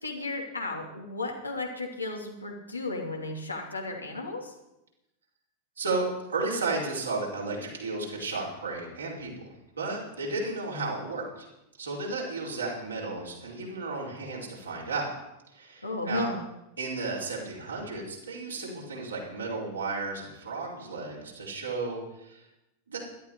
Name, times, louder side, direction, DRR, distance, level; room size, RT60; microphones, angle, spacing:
voice 1, 0.0-4.5 15.8-16.4, left 2 dB, 80° left, 0 dB, 2.8 m, -34 dB
voice 2, 5.8-11.5 11.8-15.1 15.5-16.3 16.8-22.4 22.9-23.0, right 3 dB, 75° right, -4 dB, 4.9 m, -33 dB
17.0 x 12.5 x 4.8 m, 0.91 s
figure-of-eight pair, 90°, 0 cm